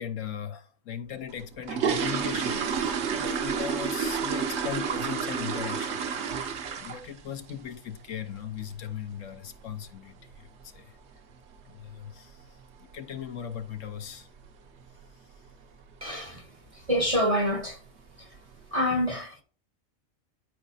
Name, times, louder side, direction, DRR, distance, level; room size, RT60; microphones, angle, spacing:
voice 1, 0.0-6.5 6.8-11.0 11.7-12.4 12.8-14.3, left 9 dB, 70° left, 1.1 m, -38 dB
sound 1, 1.3-7.2 7.5-7.8 8.1-8.2 8.6-8.7 9.1-9.3 9.6-9.7 10.3-10.4 10.6-10.8 11.3-11.6 11.9-12.0 12.4-12.6 12.9-13.0 13.4-13.5 14.1-14.5 14.8-15.1 15.5-15.6 16.0-16.1 16.9-17.0 17.4-17.9 18.3-18.4, right 6 dB, 60° right, 1.0 m, -30 dB
voice 2, 16.0-16.5 16.7-17.8 18.2-18.3 18.7-19.4, equal, 30° right, 0.8 m, -27 dB
12.0 x 5.0 x 2.7 m
omnidirectional pair, 1.4 m